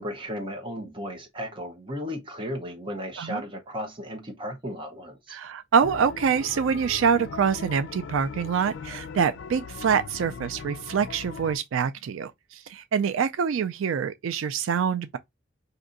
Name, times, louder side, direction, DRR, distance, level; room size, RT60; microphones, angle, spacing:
voice 1, 0.0-5.4, equal, 25° right, 0.8 m, -35 dB
voice 2, 5.3-15.2, right 6 dB, 85° right, 0.4 m, -25 dB
sound 1, 5.8-11.6, left 5 dB, 60° left, 0.3 m, -39 dB
2.7 x 2.5 x 3.8 m
head